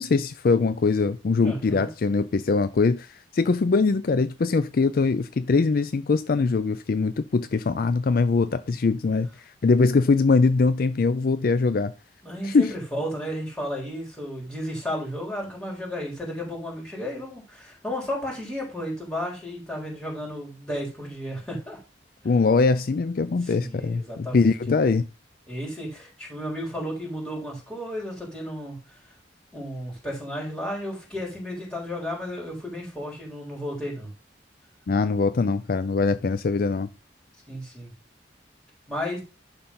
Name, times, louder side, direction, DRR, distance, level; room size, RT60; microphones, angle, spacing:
voice 1, 0.0-9.3 9.6-11.9 12.4-12.7 22.2-25.1 34.9-36.9, left 4 dB, 50° left, 0.4 m, -22 dB
voice 2, 1.4-1.9 12.2-21.8 23.4-24.9 25.5-28.8 29.5-34.1 37.5-37.9 38.9-39.2, equal, 5° left, 4.1 m, -33 dB
11.5 x 3.9 x 5.6 m
head